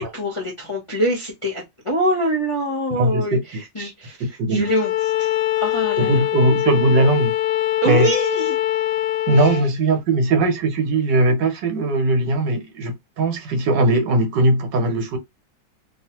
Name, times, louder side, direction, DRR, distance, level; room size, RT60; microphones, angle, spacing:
voice 1, 0.0-6.2 7.8-8.6 9.3-9.6, equal, 35° left, 0.5 m, -25 dB
voice 2, 2.9-3.4 4.2-4.7 6.0-7.3 7.8-8.1 9.3-15.2, right 2 dB, 75° right, 1.5 m, -19 dB
Bowed string instrument, 4.6-9.7, left 14 dB, 90° left, 1.3 m, -23 dB
3.0 x 2.5 x 2.8 m
omnidirectional pair, 1.9 m